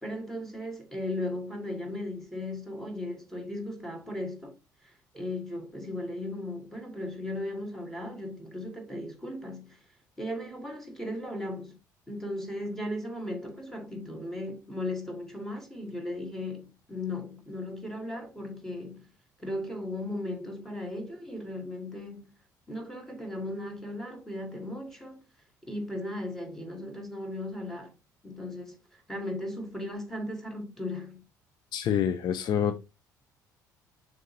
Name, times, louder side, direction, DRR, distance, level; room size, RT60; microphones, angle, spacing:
voice 1, 0.0-4.6 4.8-9.8 10.2-11.8 12.1-19.1 19.4-22.3 22.7-25.2 25.6-28.0 28.2-28.8 29.1-31.2, left 1 dB, 5° left, 2.5 m, -36 dB
voice 2, 31.7-32.8, left 8 dB, 50° left, 0.7 m, -27 dB
6.5 x 3.7 x 4.0 m
figure-of-eight pair, 55°, 10 cm